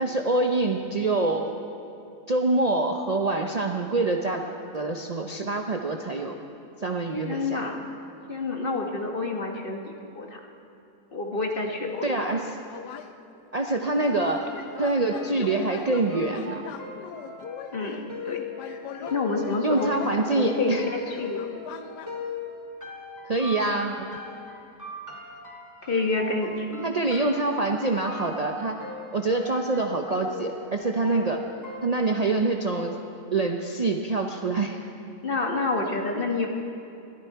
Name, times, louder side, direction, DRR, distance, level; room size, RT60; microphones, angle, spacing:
voice 1, 0.0-1.5 2.3-4.4 4.7-6.4 6.8-7.6 12.0-12.6 13.5-14.5 14.8-16.6 19.6-20.8 23.3-24.1 26.8-31.4 31.8-33.0 33.3-34.8, right 2 dB, 75° right, 3 dB, 0.3 m, -25 dB
voice 2, 7.2-7.8 8.3-10.4 11.1-12.2 17.7-18.4 18.6-19.9 20.3-21.6 25.8-26.9 35.2-36.5, left 3 dB, 35° left, 3 dB, 1.3 m, -29 dB
sound 1, 11.9-13.1 14.0-20.6 20.9-22.1, left 8 dB, 85° left, 1.3 m, -41 dB
sound 2, 14.0-32.3, left 3 dB, 10° right, 2.5 m, -39 dB
21.0 x 14.0 x 4.6 m, 2.8 s
omnidirectional pair, 1.7 m